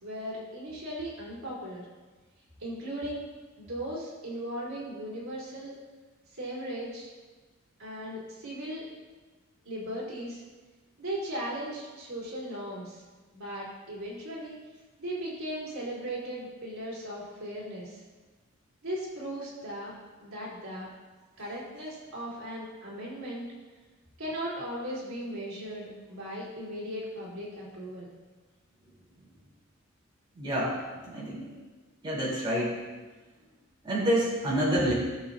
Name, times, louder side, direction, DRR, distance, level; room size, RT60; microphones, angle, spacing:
voice 1, 0.0-1.9 2.6-3.3 3.6-5.8 6.3-7.1 7.8-8.9 9.7-10.4 11.0-13.0 13.3-14.6 15.0-18.0 18.8-19.9 20.2-20.9 21.4-23.5 24.2-28.1, right 1 dB, 80° right, -6 dB, 3.7 m, -37 dB
voice 2, 30.4-30.7 31.0-31.5 32.0-32.7 33.8-34.9, equal, 25° right, -8 dB, 3.7 m, -27 dB
17.0 x 7.3 x 2.8 m, 1.3 s
head